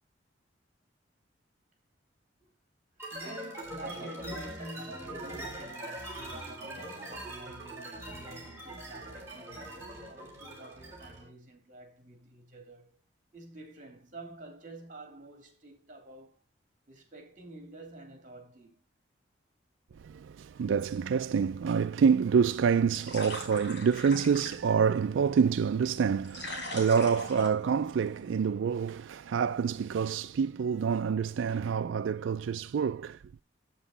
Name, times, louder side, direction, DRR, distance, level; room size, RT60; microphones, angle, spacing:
sound 1, 3.0-11.3, right 1 dB, 15° right, 3.8 m, -42 dB
voice 1, 3.0-13.0 13.3-16.4 16.9-18.9, right 1 dB, 45° right, 3.0 m, -49 dB
voice 2, 20.0-33.2, right 6 dB, 85° right, 0.4 m, -27 dB
sound 2, 22.4-28.4, left 2 dB, 65° left, 5.5 m, -43 dB
8.2 x 8.0 x 4.0 m
head